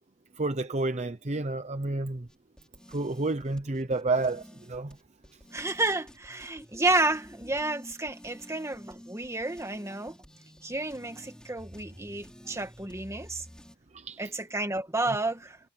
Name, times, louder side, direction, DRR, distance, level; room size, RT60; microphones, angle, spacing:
voice 1, 0.3-2.3 2.9-5.0 13.9-14.2, right 2 dB, 30° right, 0.8 m, -30 dB
sound 1, 2.3-13.8, equal, 5° left, 3.4 m, -50 dB
voice 2, 5.5-10.2 10.6-13.4 14.2-15.6, right 2 dB, 15° right, 1.5 m, -31 dB
head